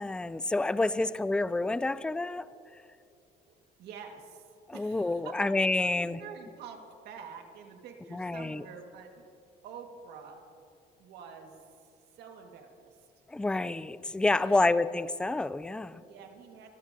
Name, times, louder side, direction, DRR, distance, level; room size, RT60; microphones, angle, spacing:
voice 1, 0.0-2.5 4.7-6.2 8.1-8.6 13.3-16.0, left 2 dB, 5° left, 16 dB, 0.3 m, -28 dB
voice 2, 3.8-9.2 9.6-10.4 11.0-13.1 14.4-14.8 16.0-16.7, right 6 dB, 80° right, 3 dB, 1.7 m, -48 dB
25.5 x 12.5 x 2.7 m, 2.6 s
cardioid pair, 110°, 17 cm